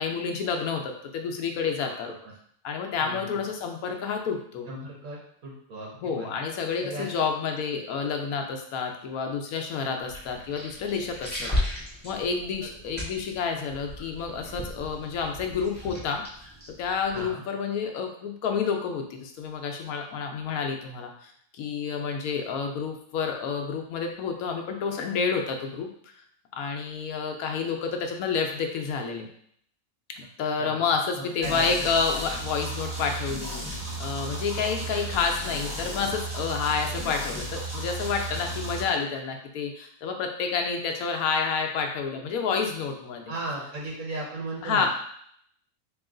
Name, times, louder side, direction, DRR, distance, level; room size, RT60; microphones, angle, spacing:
voice 1, 0.0-2.1 2.6-4.7 6.0-11.5 12.0-16.2 16.8-26.1 26.5-29.3 30.2-43.2 44.6-44.9, left 5 dB, 90° left, 3 dB, 1.1 m, -29 dB
voice 2, 1.9-2.3 3.0-3.4 4.7-6.3 6.8-7.3 17.1-17.4 30.6-30.9 31.2-31.7 43.3-44.9, right 2 dB, 75° right, -3 dB, 1.5 m, -36 dB
sound 1, 10.0-17.3, left 1 dB, 10° left, 0.9 m, -36 dB
sound 2, 31.4-38.8, right 1 dB, 25° right, 1.4 m, -34 dB
3.1 x 3.0 x 3.7 m, 0.65 s
omnidirectional pair, 1.5 m